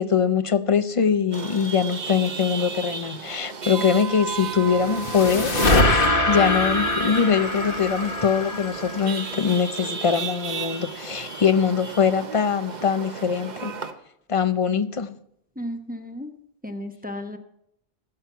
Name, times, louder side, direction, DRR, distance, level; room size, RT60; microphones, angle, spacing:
voice 1, 0.0-5.5 5.9-13.7 14.3-15.1, left 7 dB, 40° left, 13 dB, 0.6 m, -22 dB
Chatter / Vehicle horn car horn honking / Traffic noise roadway noise, 1.3-13.9, right 5 dB, 45° right, 1.0 m, -34 dB
sound 1, 4.4-9.8, left 2 dB, 60° left, 1.6 m, -24 dB
voice 2, 15.6-16.3 16.6-17.4, left 1 dB, 10° right, 5 dB, 1.0 m, -34 dB
15.5 x 7.7 x 5.7 m, 0.74 s
omnidirectional pair, 1.1 m